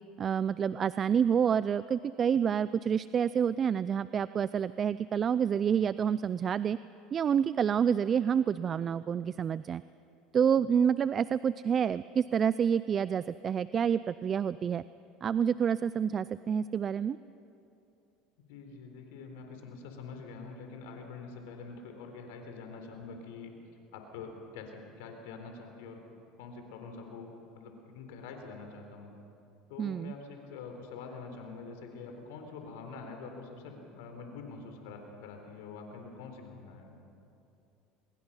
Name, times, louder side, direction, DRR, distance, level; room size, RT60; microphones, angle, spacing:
voice 1, 0.2-6.8 7.1-9.8 10.3-14.8 15.2-17.2 29.8-30.1, right 7 dB, 35° right, 16 dB, 0.4 m, -28 dB
voice 2, 18.5-23.5 23.9-26.0 26.4-27.3 27.5-29.1 29.7-37.0, left 4 dB, 80° left, 4 dB, 3.8 m, -45 dB
25.0 x 21.5 x 5.7 m, 2.8 s
supercardioid pair, 95°, 0 cm